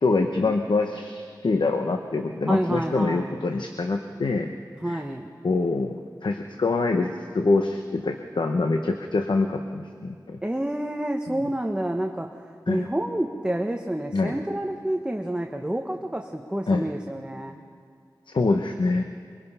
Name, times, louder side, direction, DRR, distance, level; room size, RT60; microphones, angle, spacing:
voice 1, 0.0-4.5 4.9-5.0 5.4-10.4 11.3-11.4 12.7-12.9 14.1-14.4 16.7-16.8 18.3-19.0, left 3 dB, 85° left, 5 dB, 0.9 m, -25 dB
voice 2, 2.5-3.3 4.8-5.3 10.4-17.6, right 1 dB, 10° right, 3 dB, 1.1 m, -29 dB
24.5 x 23.0 x 5.6 m, 2.1 s
wide cardioid pair, 75°, 8 cm